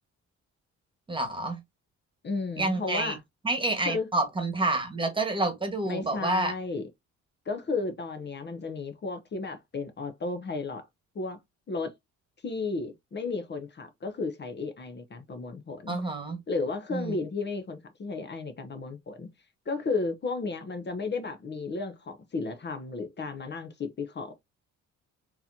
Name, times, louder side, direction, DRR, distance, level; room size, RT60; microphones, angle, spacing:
voice 1, 1.1-1.6 2.6-3.2 3.4-6.5 15.9-16.4 16.9-17.2, right 2 dB, 15° right, 1.3 m, -28 dB
voice 2, 2.2-3.2 3.9-4.1 5.8-6.9 7.5-10.8 11.1-11.4 11.7-11.9 12.4-16.0 16.5-19.3 19.7-24.3, left 3 dB, 35° left, 0.7 m, -33 dB
3.9 x 2.9 x 2.7 m
cardioid pair, 90°, 30 cm